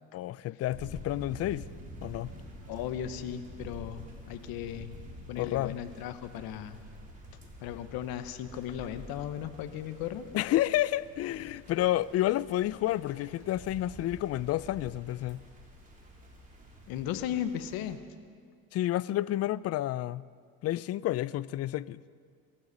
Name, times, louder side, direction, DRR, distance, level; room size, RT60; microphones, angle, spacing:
voice 1, 0.1-1.7 2.0-2.3 5.4-5.8 10.3-15.4 18.7-20.3 20.6-22.0, left 14 dB, 40° left, 0.4 m, -30 dB
sound 1, 0.7-17.9, equal, 20° right, 3.5 m, -48 dB
voice 2, 2.7-4.9 5.3-6.8 7.6-10.3 16.9-18.0, left 10 dB, 65° left, 1.1 m, -36 dB
23.0 x 13.0 x 4.2 m
supercardioid pair, 95°, 39 cm